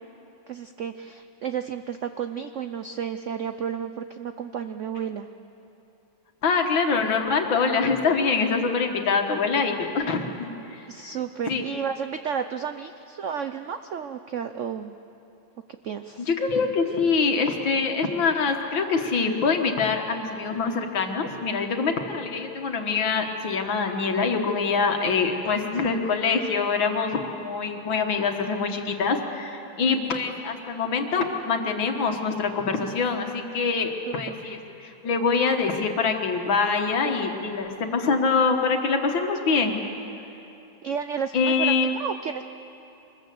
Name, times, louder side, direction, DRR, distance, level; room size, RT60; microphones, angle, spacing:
voice 1, 0.5-5.3 10.9-14.9 15.8-16.3 34.1-34.4 40.8-42.4, right 7 dB, 75° right, 9 dB, 0.6 m, -32 dB
voice 2, 6.4-10.9 11.5-11.6 16.3-39.8 41.3-41.9, left 4 dB, 75° left, 4 dB, 2.3 m, -24 dB
24.5 x 20.5 x 7.8 m, 2.8 s
omnidirectional pair, 2.1 m